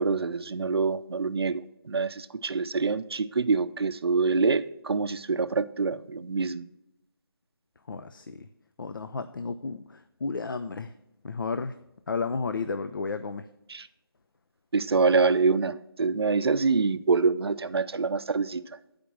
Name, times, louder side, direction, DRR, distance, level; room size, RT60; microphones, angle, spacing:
voice 1, 0.0-6.6 13.7-13.9 14.7-18.6, right 4 dB, 90° right, 11 dB, 0.5 m, -25 dB
voice 2, 7.9-8.5 8.8-10.9 11.2-11.8 12.1-13.5, left 4 dB, 60° left, 10 dB, 0.4 m, -32 dB
8.3 x 5.1 x 5.9 m, 0.87 s
figure-of-eight pair, 170°, 13 cm